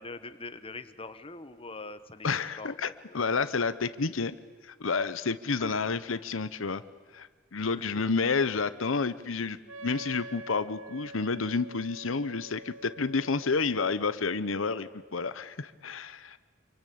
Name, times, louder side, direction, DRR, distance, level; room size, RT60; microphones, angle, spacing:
voice 1, 0.0-3.2 5.5-5.7 7.7-7.9, left 3 dB, 30° left, 11 dB, 1.3 m, -43 dB
voice 2, 2.2-2.9 3.1-4.3 4.6-6.8 7.1-16.4, left 4 dB, 80° left, 14 dB, 0.9 m, -30 dB
Wind instrument woodwind instrument, 9.7-15.3, right 1 dB, 80° right, 1.5 m, -47 dB
28.0 x 24.0 x 8.6 m, 1.3 s
head